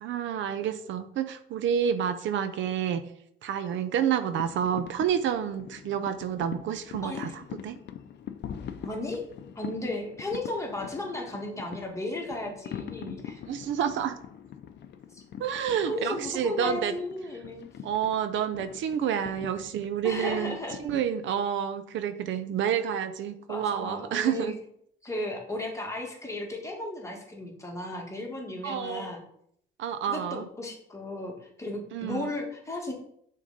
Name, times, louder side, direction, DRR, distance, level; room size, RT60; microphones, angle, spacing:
voice 1, 0.0-3.0 3.4-7.3 7.6-7.8 13.5-14.2 15.4-16.9 17.8-24.5 28.6-29.1 29.8-30.4 31.9-32.3, right 8 dB, 70° right, 10 dB, 0.5 m, -29 dB
sound 1, 4.3-21.0, left 9 dB, 60° left, 0.5 m, -43 dB
voice 2, 7.0-7.4 8.8-9.2 9.5-13.4 15.1-15.2 15.9-17.7 20.0-20.8 23.5-24.5 25.0-29.2 30.1-32.9, left 1 dB, 15° left, 0 dB, 1.6 m, -35 dB
6.3 x 3.7 x 4.0 m, 0.69 s
cardioid pair, 90°, 20 cm